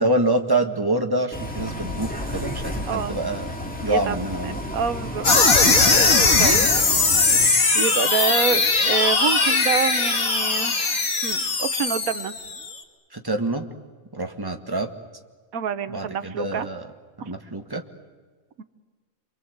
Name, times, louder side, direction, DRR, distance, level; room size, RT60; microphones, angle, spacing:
voice 1, 0.0-3.5 3.8-4.7 13.1-13.7 14.1-14.9 15.9-16.9 17.2-17.8, right 2 dB, 15° right, 5 dB, 1.6 m, -26 dB
Bus, 1.3-7.5, left 1 dB, 5° left, 2.6 m, -32 dB
voice 2, 2.8-3.2 3.8-4.2 4.4-5.3 5.7-6.1 6.4-6.6 7.7-12.3 15.5-16.7 17.2-17.3 18.6-18.7, right 7 dB, 85° right, 12 dB, 1.5 m, -27 dB
sound 1, 5.2-12.7, left 3 dB, 80° left, 2.5 m, -19 dB
28.5 x 24.0 x 8.0 m, 1.5 s
omnidirectional pair, 1.5 m